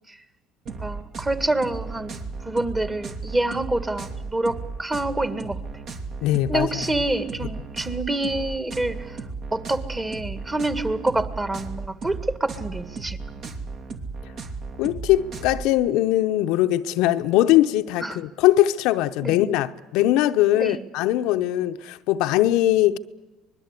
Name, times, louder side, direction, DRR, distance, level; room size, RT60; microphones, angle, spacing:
voice 1, 0.7-5.6 6.5-9.2 9.5-13.5 18.0-18.2 19.2-19.4 20.5-20.8, right 2 dB, 20° right, 1.9 m, -27 dB
sound 1, 0.7-15.7, right 4 dB, 55° right, 2.5 m, -35 dB
voice 2, 6.2-6.8 14.8-23.0, left 14 dB, 75° left, 0.7 m, -21 dB
25.0 x 20.5 x 8.3 m
supercardioid pair, 75°, 0 cm